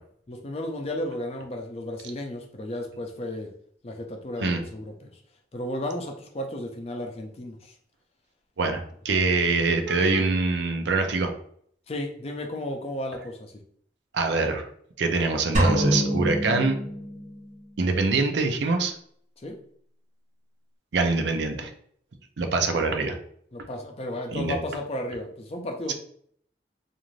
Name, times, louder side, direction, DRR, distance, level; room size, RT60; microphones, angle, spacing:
voice 1, 0.3-3.5 3.8-5.2 5.5-7.7 11.9-13.5 19.4-19.6 23.5-25.9, left 1 dB, 35° left, 3 dB, 0.4 m, -33 dB
voice 2, 8.6-11.3 14.1-14.7 15.0-16.7 17.8-18.9 20.9-21.7 22.4-23.2 24.3-24.6 25.9-26.0, right 3 dB, 80° right, 5 dB, 0.5 m, -24 dB
sound 1, 15.5-17.6, equal, 45° right, 0.8 m, -25 dB
2.5 x 2.5 x 3.1 m, 0.63 s
head